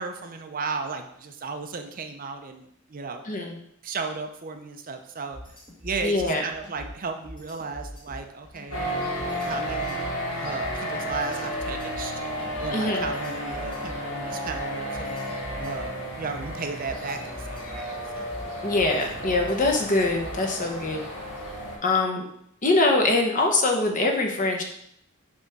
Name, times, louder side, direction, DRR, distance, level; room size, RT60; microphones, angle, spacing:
voice 1, 0.0-3.2 3.8-5.4 5.8-10.0 10.4-12.2 12.6-15.2 15.6-18.3, right 4 dB, 40° right, 6 dB, 0.6 m, -35 dB
voice 2, 3.2-3.6 6.0-6.4 12.7-13.1 18.6-21.0 21.8-22.2 22.6-24.6, left 2 dB, 40° left, 2 dB, 1.0 m, -23 dB
sound 1, 5.3-20.6, equal, 20° left, 1.3 m, -42 dB
sound 2, 8.7-21.8, equal, 75° left, 1.9 m, -32 dB
6.6 x 3.5 x 5.8 m, 0.72 s
head